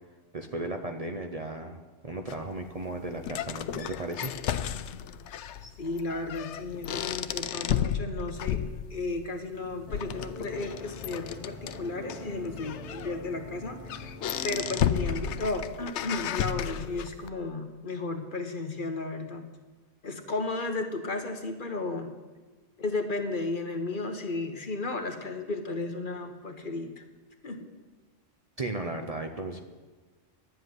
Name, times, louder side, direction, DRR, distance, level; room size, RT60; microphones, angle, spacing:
voice 1, 0.3-4.3 28.6-29.6, right 2 dB, 35° right, 4 dB, 0.7 m, -35 dB
sound 1, 2.3-17.3, left 9 dB, 75° left, 0.9 m, -34 dB
voice 2, 5.3-8.6 8.9-14.1 14.4-19.5 20.0-22.1 22.8-27.0 27.4-27.7, left 3 dB, 45° left, 5 dB, 1.2 m, -34 dB
sound 2, 9.9-15.3, left 1 dB, ahead, 3.4 m, -44 dB
11.5 x 7.8 x 9.4 m, 1.3 s
omnidirectional pair, 1.2 m